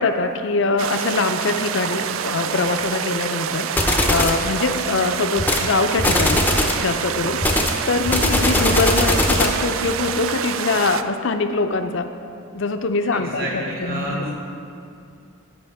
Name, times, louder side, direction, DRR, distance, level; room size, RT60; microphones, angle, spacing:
voice 1, 0.0-3.7 4.1-6.5 6.8-7.4 7.9-12.1 12.5-13.6 13.9-14.3, left 3 dB, 60° left, 8 dB, 0.5 m, -23 dB
sound 1, 0.8-11.0, right 8 dB, 70° right, 0.3 m, -27 dB
sound 2, 3.8-4.4 5.4-5.7 6.0-6.8 7.4-9.6, left 1 dB, 10° left, 0.5 m, -20 dB
voice 2, 13.1-14.4, right 1 dB, 45° right, -3 dB, 1.7 m, -30 dB
14.5 x 5.4 x 3.5 m, 2.5 s
head